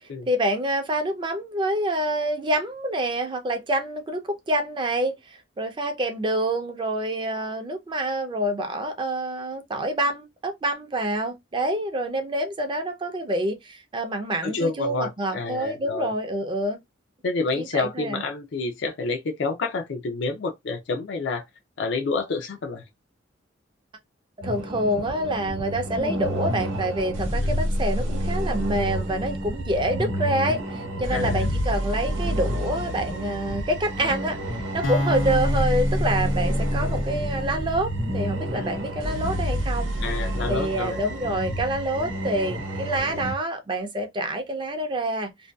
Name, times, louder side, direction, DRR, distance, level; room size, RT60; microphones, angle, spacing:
voice 1, 0.3-16.8 17.6-18.2 24.4-40.0 40.5-45.3, right 1 dB, 25° right, 0.5 m, -27 dB
voice 2, 14.4-16.1 17.2-21.5 21.8-22.8 27.4-27.6 31.1-31.5 38.5-38.8 40.0-41.0, left 3 dB, 65° left, 0.4 m, -29 dB
sound 1, 24.4-43.3, equal, 90° right, 0.7 m, -29 dB
sound 2, 34.8-39.0, left 1 dB, 90° left, 0.8 m, -29 dB
2.6 x 2.2 x 2.2 m
head